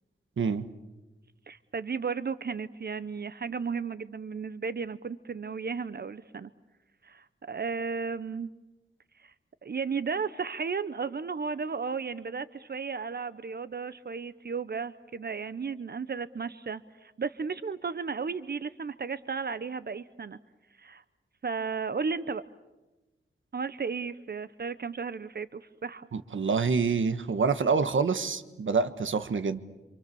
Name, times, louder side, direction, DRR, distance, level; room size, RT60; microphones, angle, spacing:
voice 1, 1.5-6.5 7.0-8.5 9.2-9.3 9.6-20.4 20.8-21.0 21.4-22.4 23.5-26.1, right 5 dB, 50° right, 14 dB, 0.8 m, -34 dB
voice 2, 26.1-29.6, right 5 dB, 70° right, 11 dB, 1.5 m, -27 dB
27.5 x 27.0 x 7.0 m, 1.1 s
wide cardioid pair, 90°, 21 cm